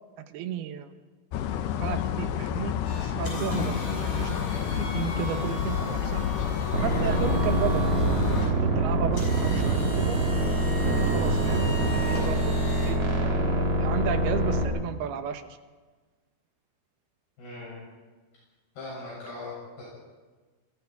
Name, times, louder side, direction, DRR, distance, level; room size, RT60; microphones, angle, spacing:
voice 1, 0.3-0.9 1.8-4.3 4.7-6.3 6.8-7.9 8.3-10.2 10.8-15.5, right 9 dB, 75° right, 8 dB, 2.9 m, -34 dB
sound 1, 1.3-8.5, left 8 dB, 80° left, 3.1 m, -29 dB
sound 2, 2.8-12.9, right 1 dB, 40° left, 7.7 m, -37 dB
voice 2, 5.2-5.5 17.4-17.8 18.8-19.8, left 2 dB, 65° left, -6 dB, 9.2 m, -40 dB
sound 3, 6.7-14.6, right 1 dB, 40° right, 4.0 m, -25 dB
27.0 x 23.0 x 4.7 m, 1.3 s
omnidirectional pair, 4.9 m